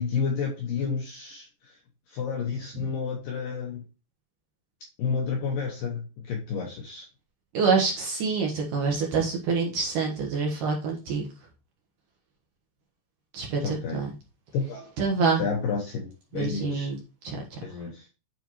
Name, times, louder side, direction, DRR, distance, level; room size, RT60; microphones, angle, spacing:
voice 1, 0.0-1.8 2.1-3.8 5.0-7.1 13.6-14.0 14.5-14.9 15.4-16.9 17.6-18.1, left 5 dB, 75° left, 0 dB, 2.0 m, -30 dB
voice 2, 7.5-11.3 13.3-14.1 15.0-15.4 16.3-17.0 17.2-17.6, right 4 dB, 65° right, 0 dB, 2.2 m, -26 dB
9.4 x 4.5 x 3.0 m, 0.30 s
omnidirectional pair, 5.0 m